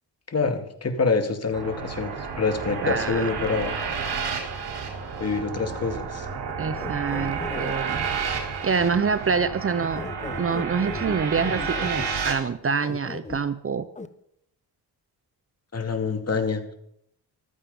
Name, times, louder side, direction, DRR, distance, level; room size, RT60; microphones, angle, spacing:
voice 1, 0.3-3.7 5.2-6.3 15.7-16.6, left 4 dB, 40° left, 6 dB, 2.2 m, -26 dB
sound 1, 1.5-12.3, right 6 dB, 85° right, 4.1 m, -31 dB
voice 2, 2.8-3.3 6.6-8.1 8.6-10.0 10.4-13.9, right 5 dB, 35° right, 14 dB, 0.7 m, -26 dB
sound 2, 6.5-7.7 9.8-12.1 12.8-13.4 14.0-14.1, left 3 dB, 20° left, 0.9 m, -36 dB
15.0 x 13.0 x 5.5 m, 0.73 s
cardioid pair, 100°, 40 cm